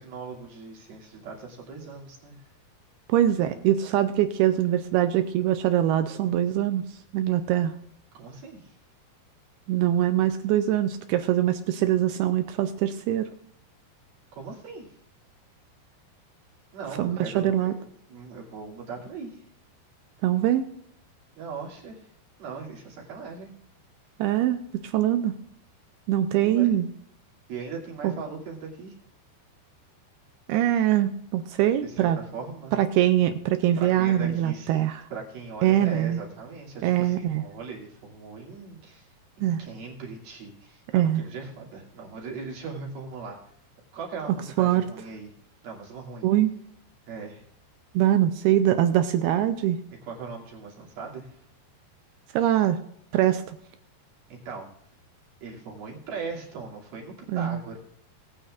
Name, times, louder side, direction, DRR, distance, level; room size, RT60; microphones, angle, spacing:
voice 1, 0.0-2.4 8.1-8.8 14.3-14.9 16.7-19.4 21.4-22.1 22.4-23.5 26.4-26.7 27.5-29.0 31.8-32.8 33.8-39.1 39.4-43.4 43.9-45.3 45.6-46.3 47.1-47.4 50.0-51.4 54.3-54.7 55.4-57.8, right 4 dB, 60° right, -3 dB, 4.3 m, -39 dB
voice 2, 3.1-6.9 7.1-7.7 9.7-13.3 17.0-17.7 20.2-20.6 24.2-25.3 26.1-26.9 28.0-28.1 30.5-32.2 32.7-35.0 35.6-36.2 36.8-37.5 39.4-39.6 40.9-41.2 44.6-44.8 46.2-46.5 48.0-49.8 52.3-52.8 53.1-53.6 57.3-57.6, right 12 dB, 80° right, 9 dB, 2.3 m, -23 dB
21.0 x 8.7 x 2.5 m, 0.72 s
omnidirectional pair, 5.0 m